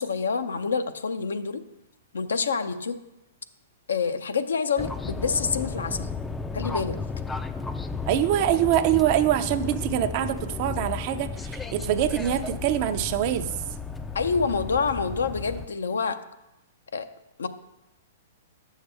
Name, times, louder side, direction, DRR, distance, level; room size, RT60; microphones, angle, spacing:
voice 1, 0.0-1.6 2.1-3.0 3.9-6.1 6.5-7.0 14.1-16.2 16.9-17.1 17.4-17.5, left 5 dB, 80° left, 10 dB, 0.5 m, -27 dB
sound 1, 4.8-15.7, left 4 dB, 10° left, 0.4 m, -34 dB
voice 2, 8.1-13.5, right 11 dB, 45° right, 9 dB, 0.5 m, -24 dB
9.3 x 6.4 x 3.4 m, 0.93 s
hypercardioid pair, 115°, 0 cm